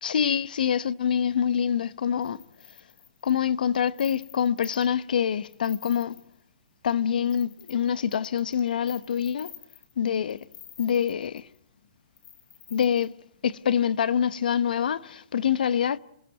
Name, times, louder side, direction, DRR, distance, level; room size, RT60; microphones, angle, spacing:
voice 1, 0.0-2.4 3.2-6.2 6.8-9.5 10.0-10.4 10.8-11.5 12.7-13.1 13.4-16.0, left 8 dB, 80° left, 0.9 m, -25 dB
sound 1, 2.2-5.0 5.4-6.4 6.8-6.9 7.3-11.6 12.2-13.1, left 9 dB, 50° left, 3.1 m, -48 dB
27.5 x 17.0 x 9.4 m
hypercardioid pair, 170°, 5 cm